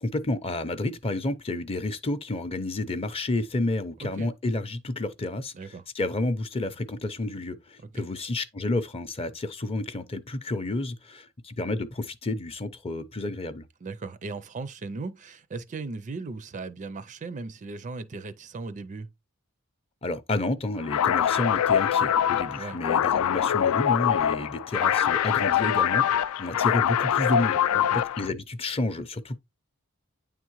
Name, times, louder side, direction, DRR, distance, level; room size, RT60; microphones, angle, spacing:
voice 1, 0.0-5.5 5.9-13.7 20.0-27.6 27.9-29.4, left 2 dB, 25° left, 0.5 m, -30 dB
voice 2, 5.5-5.8 7.9-8.0 13.8-19.1 22.5-22.8 27.9-28.0, right 3 dB, 35° right, 0.4 m, -37 dB
sound 1, 20.8-28.3, left 9 dB, 80° left, 0.3 m, -24 dB
9.1 x 3.6 x 3.0 m
head